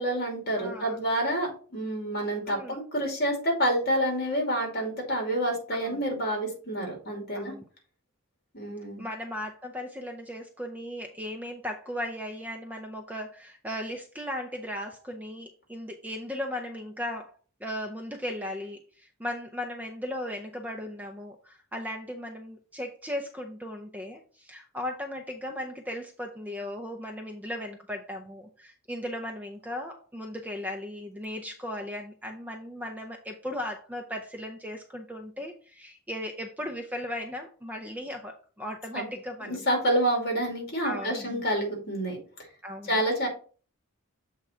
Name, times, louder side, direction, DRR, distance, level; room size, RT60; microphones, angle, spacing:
voice 1, 0.0-7.5 8.5-9.0 38.9-39.1 39.4-42.2 42.8-43.3, right 1 dB, 45° left, 1 dB, 2.5 m, -28 dB
voice 2, 0.6-1.0 2.5-2.8 5.7-6.0 7.4-7.6 9.0-17.3 17.6-39.6 40.8-41.4 42.6-42.9, left 1 dB, 5° right, 4 dB, 0.5 m, -37 dB
7.4 x 3.7 x 4.3 m, 0.40 s
head